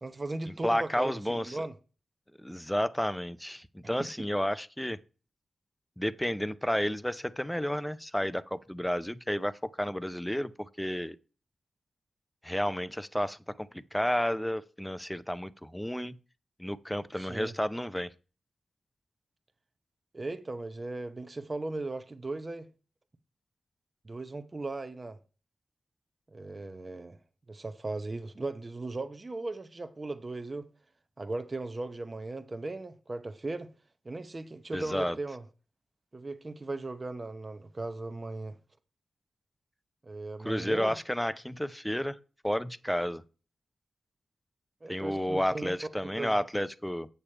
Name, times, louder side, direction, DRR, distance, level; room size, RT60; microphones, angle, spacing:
voice 1, 0.0-1.1 1.4-1.7 17.2-17.5 20.1-22.7 24.0-25.2 26.3-27.2 27.5-30.7 31.2-33.7 34.0-35.4 36.1-38.6 40.0-41.0 44.8-45.7 46.0-46.3, right 2 dB, 30° right, 0.8 m, -37 dB
voice 2, 0.6-1.7 2.4-5.0 6.0-11.2 12.4-16.2 16.6-18.1 34.7-35.2 40.4-42.2 42.4-43.2 44.9-47.1, equal, 5° left, 0.5 m, -31 dB
8.4 x 6.9 x 4.4 m
wide cardioid pair, 110°, 0 cm